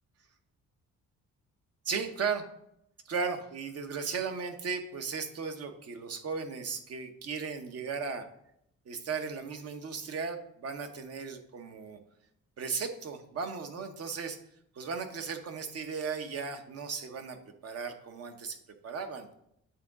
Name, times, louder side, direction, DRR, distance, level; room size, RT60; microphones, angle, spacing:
voice 1, 1.8-2.4 3.1-8.2 8.9-12.0 12.6-14.4 14.7-18.6 18.8-19.3, right 5 dB, 55° right, 6 dB, 0.9 m, -36 dB
8.6 x 3.8 x 3.6 m, 0.76 s
cardioid pair, 90°, 30 cm